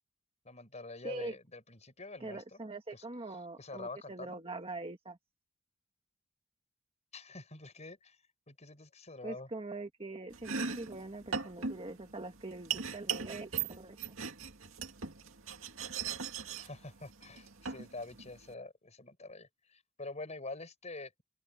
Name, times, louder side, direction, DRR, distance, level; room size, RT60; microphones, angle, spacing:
voice 1, 0.4-2.6 2.9-4.4 7.1-8.2 8.5-9.5 16.6-21.2, left 2 dB, 35° left, 5.2 m, -46 dB
voice 2, 1.0-1.4 2.2-5.2 9.2-14.0, right 2 dB, 25° right, 1.7 m, -43 dB
Domestic sounds home sounds, 10.3-18.5, right 6 dB, 70° right, 2.2 m, -40 dB
open air
head